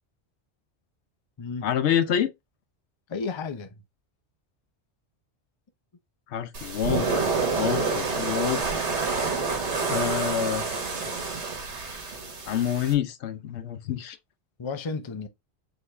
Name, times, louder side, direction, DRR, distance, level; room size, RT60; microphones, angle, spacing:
voice 1, 1.6-2.3 6.3-8.6 9.9-10.6 12.5-14.2, left 9 dB, 75° left, 0.9 m, -27 dB
voice 2, 3.1-3.7 11.1-11.2 14.6-15.3, left 4 dB, 35° left, 0.4 m, -32 dB
sound 1, 6.5-12.9, right 4 dB, 75° right, 1.6 m, -28 dB
4.9 x 2.9 x 3.2 m
omnidirectional pair, 1.2 m